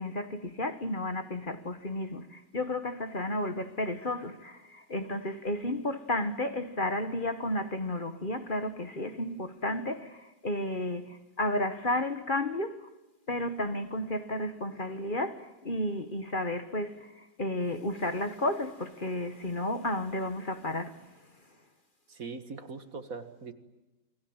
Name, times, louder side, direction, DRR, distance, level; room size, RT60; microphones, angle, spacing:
voice 1, 0.0-12.9 13.3-17.1 17.4-21.1, left 1 dB, 30° left, 1.4 m, -32 dB
voice 2, 22.1-23.5, right 4 dB, 50° right, 2.1 m, -41 dB
29.5 x 21.5 x 8.8 m
omnidirectional pair, 1.9 m